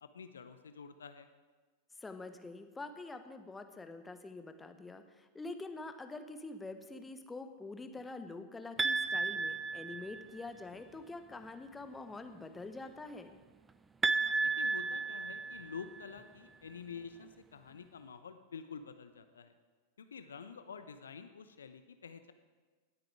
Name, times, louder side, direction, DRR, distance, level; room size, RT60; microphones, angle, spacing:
voice 1, 0.0-1.3 14.4-19.5 20.0-22.3, left 6 dB, 70° left, 10 dB, 0.7 m, -48 dB
voice 2, 2.0-13.4, left 3 dB, 10° left, 8 dB, 1.0 m, -46 dB
sound 1, 8.8-10.4 14.0-16.1, right 3 dB, 15° right, 0.5 m, -33 dB
18.5 x 8.9 x 4.7 m, 1.4 s
figure-of-eight pair, 90°, 0 cm